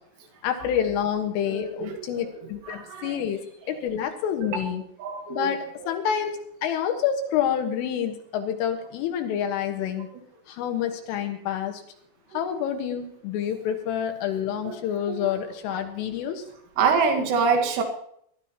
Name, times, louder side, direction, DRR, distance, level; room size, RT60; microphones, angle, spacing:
voice 1, 0.4-3.4 3.7-4.8 5.3-10.1 10.5-11.8 12.3-16.4, left 9 dB, 75° left, 6 dB, 3.9 m, -28 dB
voice 2, 1.4-3.2 3.7-3.8 4.4-4.5 5.0-5.9 13.6-13.7 14.6-14.8 15.1-15.4 15.7-15.8 16.8-17.8, right 5 dB, 65° right, 4 dB, 3.6 m, -27 dB
22.0 x 12.0 x 3.0 m, 0.68 s
omnidirectional pair, 6.0 m